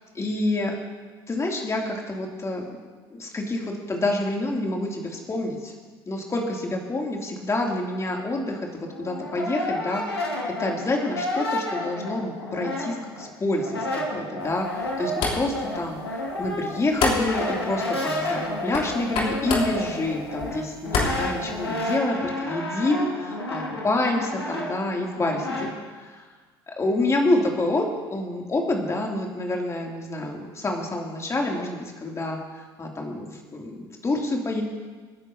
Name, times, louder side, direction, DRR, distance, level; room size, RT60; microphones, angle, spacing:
voice 1, 0.1-0.8 1.3-2.6 3.1-5.7 6.1-26.3 26.7-34.6, left 2 dB, 20° left, 0 dB, 2.8 m, -28 dB
Brass instrument, 8.9-13.3 13.6-25.7, left 1 dB, 85° left, 2.1 m, -31 dB
sound 1, 14.4-21.9, left 3 dB, 50° left, 3.4 m, -31 dB
26.5 x 10.0 x 2.8 m, 1.4 s
figure-of-eight pair, 60°, 13 cm